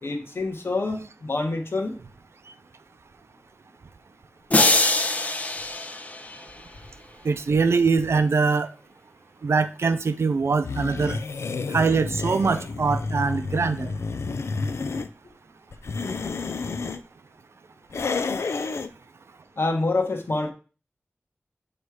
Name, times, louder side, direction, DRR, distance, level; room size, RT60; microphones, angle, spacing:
voice 1, 0.0-2.0 19.6-20.5, left 2 dB, 60° left, 4 dB, 1.2 m, -26 dB
sound 1, 4.5-6.8, left 2 dB, 35° left, 0.6 m, -23 dB
voice 2, 7.2-8.7 9.4-11.2 11.7-13.9, right 4 dB, 85° right, 11 dB, 0.5 m, -22 dB
sound 2, 10.6-15.1 15.7-17.0 17.9-18.9, left 4 dB, 90° left, 0.4 m, -30 dB
7.9 x 3.2 x 4.7 m, 0.36 s
wide cardioid pair, 70°, 4 cm